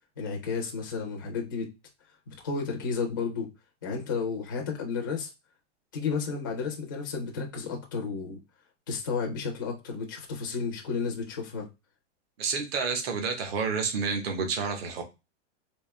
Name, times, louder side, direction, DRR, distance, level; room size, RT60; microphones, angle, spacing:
voice 1, 0.2-1.7 2.3-3.5 3.8-5.3 5.9-8.4 8.9-11.7, left 5 dB, 20° left, 0.3 m, -32 dB
voice 2, 12.4-15.0, right 5 dB, 55° right, 0.9 m, -29 dB
3.5 x 2.6 x 3.1 m
supercardioid pair, 180°, 36 cm